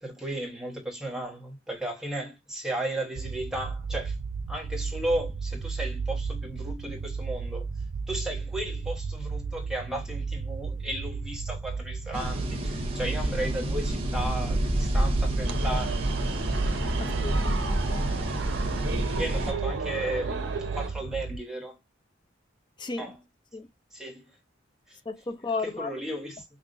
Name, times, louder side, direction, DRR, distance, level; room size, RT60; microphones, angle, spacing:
voice 1, 0.0-4.2 4.5-7.7 8.1-16.4 19.2-21.8 23.0-23.2 23.9-24.3 24.9-25.0 25.6-26.4, right 1 dB, 5° right, 1.1 m, -35 dB
sound 1, 3.2-21.4, right 4 dB, 65° right, 0.4 m, -34 dB
sound 2, 12.1-19.5, equal, 30° right, 1.1 m, -29 dB
sound 3, 15.4-20.9, right 4 dB, 85° right, 0.8 m, -35 dB
voice 2, 17.0-18.0 22.8-23.1 23.5-23.7 25.1-25.9, left 4 dB, 25° left, 0.5 m, -34 dB
5.5 x 2.5 x 2.5 m
head